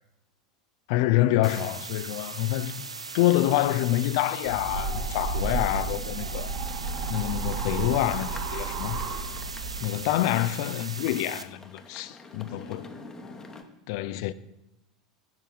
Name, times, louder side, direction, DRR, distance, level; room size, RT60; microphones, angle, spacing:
voice 1, 0.9-2.8 3.1-6.5 7.1-9.0 9.8-12.9 13.9-14.3, left 15 dB, 50° left, 0.4 m, -27 dB
sound 1, 1.4-11.4, right 4 dB, 80° right, 0.5 m, -39 dB
sound 2, 4.4-9.8, right 3 dB, 45° right, 1.5 m, -32 dB
sound 3, 6.5-13.6, left 3 dB, 15° left, 1.0 m, -48 dB
7.7 x 5.5 x 6.1 m
figure-of-eight pair, 80°, 3 cm